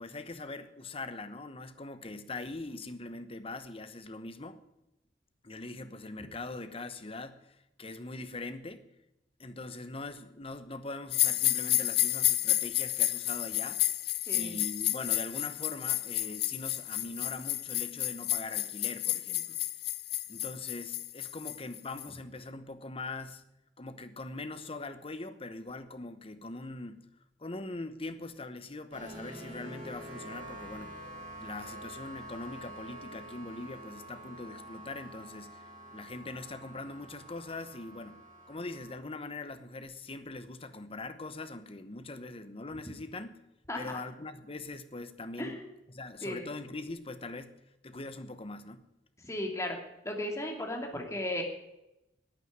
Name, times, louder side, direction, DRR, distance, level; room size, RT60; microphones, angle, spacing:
voice 1, 0.0-4.6 5.4-7.4 7.8-8.9 9.4-13.8 14.3-19.6 20.3-23.4 23.8-27.1 27.4-31.0 31.4-35.6 35.9-38.2 38.5-43.4 43.7-45.6 45.9-47.6 47.8-48.9, left 2 dB, 35° left, 1.1 m, -42 dB
sound 1, 11.1-22.1, left 15 dB, 65° left, 0.6 m, -31 dB
voice 2, 14.3-14.6 43.7-43.9 45.4-45.7 46.2-46.4 49.2-49.8 50.0-51.4, left 1 dB, 20° left, 2.6 m, -35 dB
sound 2, 28.9-39.0, right 1 dB, 45° right, 7.2 m, -47 dB
11.5 x 9.3 x 9.5 m
head